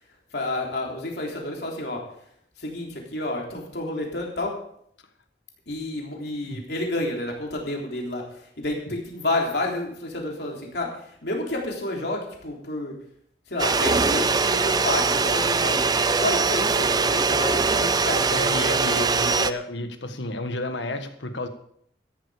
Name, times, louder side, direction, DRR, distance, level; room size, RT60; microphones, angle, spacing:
voice 1, 0.3-2.0 2.6-4.6 5.7-8.2 8.6-12.9 13.5-15.8 16.1-19.0, left 2 dB, 60° left, 0 dB, 3.5 m, -30 dB
sound 1, 13.6-19.5, right 4 dB, 20° right, 0.5 m, -22 dB
voice 2, 18.3-21.5, left 2 dB, 85° left, 7 dB, 1.6 m, -31 dB
13.5 x 11.5 x 5.0 m, 0.68 s
head